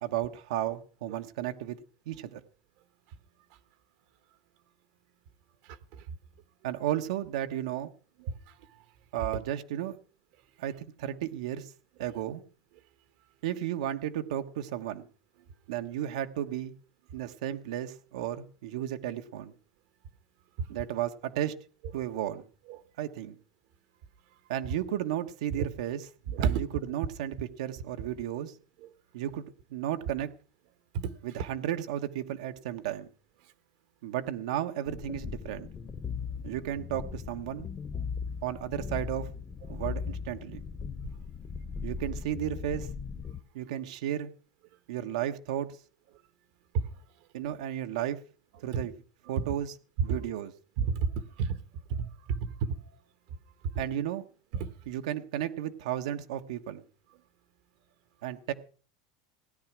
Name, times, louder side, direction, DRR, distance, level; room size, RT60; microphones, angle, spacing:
voice 1, 0.0-1.8 2.1-2.4 6.6-7.9 9.1-10.0 10.6-11.7 12.0-12.4 13.4-15.1 15.7-16.7 17.1-19.5 20.7-21.6 21.9-22.4 23.0-23.4 24.5-26.1 26.4-28.5 29.1-30.3 31.2-33.1 34.0-35.7 36.4-37.7 38.4-39.3 39.7-40.6 41.8-42.9 43.5-44.3 44.9-45.7 47.3-48.2 48.6-48.9 49.3-49.8 50.0-50.5 53.8-54.2 54.9-56.8 58.2-58.5, right 11 dB, 80° right, 1.2 m, -33 dB
voice 2, 26.3-26.6 30.9-31.1 46.7-46.9 48.7-48.8 50.8-51.6 51.9-52.7 54.5-54.7, right 6 dB, 55° right, 1.1 m, -29 dB
sound 1, 34.9-43.4, left 6 dB, 20° left, 0.8 m, -38 dB
17.0 x 10.0 x 6.0 m
supercardioid pair, 165°, 3 cm